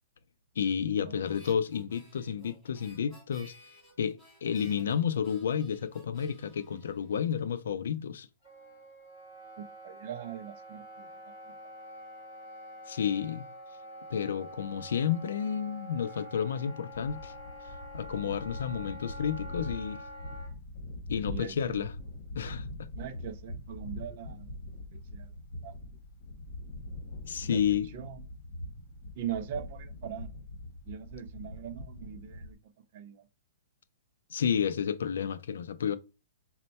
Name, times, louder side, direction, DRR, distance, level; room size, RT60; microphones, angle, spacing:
voice 1, 0.6-3.5 4.0-8.3 12.9-13.5 14.1-17.3 17.9-20.0 21.1-22.0 22.3-22.7 27.2-27.9 34.3-36.0, left 8 dB, 75° left, 0.4 m, -31 dB
Harmonica, 1.2-7.7, equal, ahead, 2.4 m, -58 dB
Wind instrument woodwind instrument, 8.4-20.5, equal, 20° left, 1.5 m, -47 dB
voice 2, 9.6-11.1 21.3-21.8 23.0-24.6 24.9-25.3 25.6-25.7 27.4-27.6 27.9-28.2 29.2-30.3 30.9-32.6 32.9-33.2, right 9 dB, 35° right, 0.4 m, -41 dB
sound 1, 16.9-32.5, left 1 dB, 45° left, 1.3 m, -43 dB
4.3 x 2.1 x 4.0 m
hypercardioid pair, 175°, 0 cm